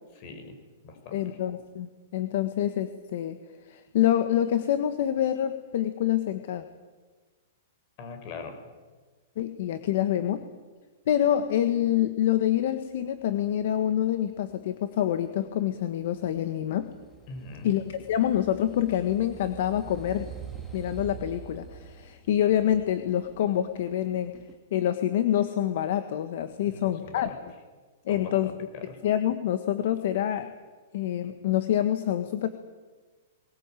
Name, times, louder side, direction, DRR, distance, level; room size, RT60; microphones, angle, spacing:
voice 1, 0.2-0.5 0.8-1.4 8.0-8.5 17.3-17.7 26.7-27.4 28.1-28.5 28.9-29.0, left 4 dB, 40° left, 6 dB, 5.7 m, -41 dB
voice 2, 1.1-3.4 3.7-6.6 9.4-10.4 11.1-16.9 17.6-20.3 20.7-24.3 24.7-27.3 28.0-28.5 29.0-30.5 30.9-32.5, left 11 dB, 60° left, 10 dB, 1.5 m, -26 dB
sound 1, 13.2-24.5, right 7 dB, 10° left, 2.9 m, -46 dB
21.0 x 20.5 x 9.2 m, 1.4 s
hypercardioid pair, 155°, 0 cm